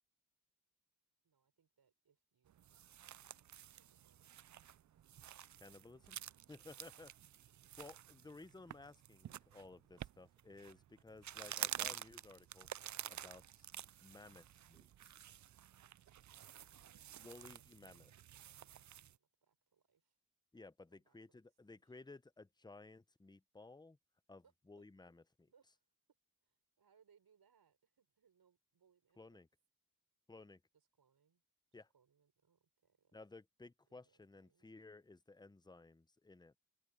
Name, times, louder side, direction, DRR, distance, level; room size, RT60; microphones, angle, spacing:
voice 1, 1.2-2.7 3.1-3.5 3.7-4.6 5.6-6.5 16.7-20.2 20.9-21.4 21.7-22.1 24.4-24.9 25.5-25.9 26.4-29.4 30.7-31.4 31.7-33.2 33.9-34.8, right 7 dB, 80° right, 6.0 m, -76 dB
sound 1, 2.5-19.2, right 11 dB, 55° right, 0.4 m, -50 dB
voice 2, 5.6-6.2 6.5-7.1 7.8-12.7 13.1-13.7 14.0-15.1 17.2-18.1 20.5-24.0 24.3-25.5 29.2-29.5 30.3-30.6 31.7-31.9 33.1-36.6, left 3 dB, 10° left, 0.7 m, -57 dB
open air
cardioid pair, 75°, 37 cm